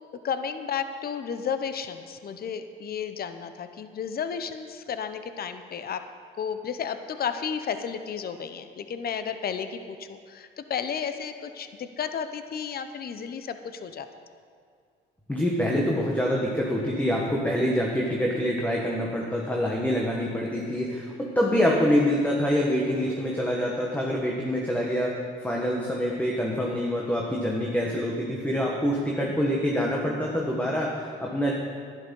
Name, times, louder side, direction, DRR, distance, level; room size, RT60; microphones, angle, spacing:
voice 1, 0.2-6.0 6.4-14.1, left 7 dB, 50° left, 9 dB, 0.8 m, -33 dB
voice 2, 15.3-31.5, equal, 10° left, -2 dB, 1.6 m, -26 dB
11.0 x 11.0 x 5.5 m, 2.2 s
cardioid pair, 90°, 20 cm